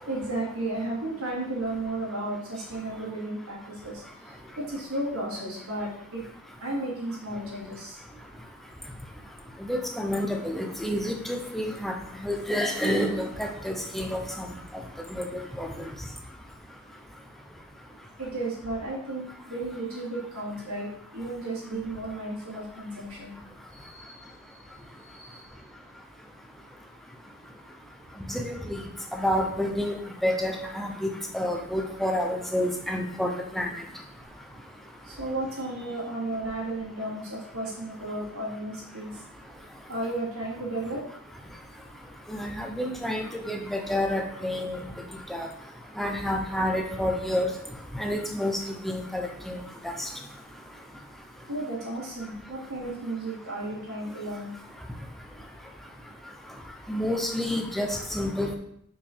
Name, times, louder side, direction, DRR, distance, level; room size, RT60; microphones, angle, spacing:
voice 1, 0.1-6.3 6.6-8.0 18.2-23.4 23.7-25.7 34.7-39.2 39.9-41.1 51.5-54.5, right 2 dB, 80° right, -8 dB, 2.9 m, -34 dB
voice 2, 9.6-11.9 12.2-14.5 15.1-15.7 28.3-28.8 29.1-33.7 42.3-44.8 45.3-45.5 46.0-47.5 47.9-48.6 48.8-50.1 56.9-58.6, left 1 dB, ahead, 2 dB, 0.8 m, -29 dB
5.9 x 4.8 x 4.8 m, 0.71 s
head